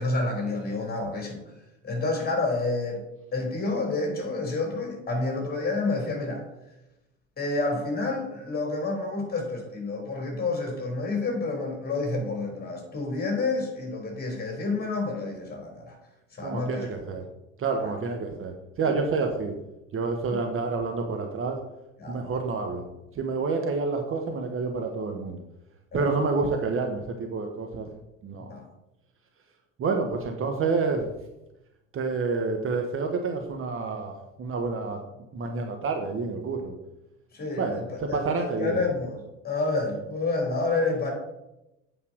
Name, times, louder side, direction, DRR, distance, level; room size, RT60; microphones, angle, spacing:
voice 1, 0.0-1.4 1.8-3.0 3.3-6.4 7.4-16.0 16.3-16.9 17.8-17.9 20.3-20.4 22.0-22.2 25.9-26.1 28.5-28.6 37.3-37.8 38.1-39.2 39.4-41.1, left 3 dB, 25° left, 1 dB, 3.9 m, -29 dB
voice 2, 16.4-17.2 17.6-19.5 19.9-21.6 22.1-22.9 23.1-25.4 25.9-27.9 28.2-28.5 29.8-31.1 31.9-35.0 35.3-36.7 37.6-38.8, right 4 dB, 30° right, 4 dB, 1.2 m, -28 dB
8.5 x 5.5 x 6.3 m, 0.93 s
figure-of-eight pair, 70°, 40 cm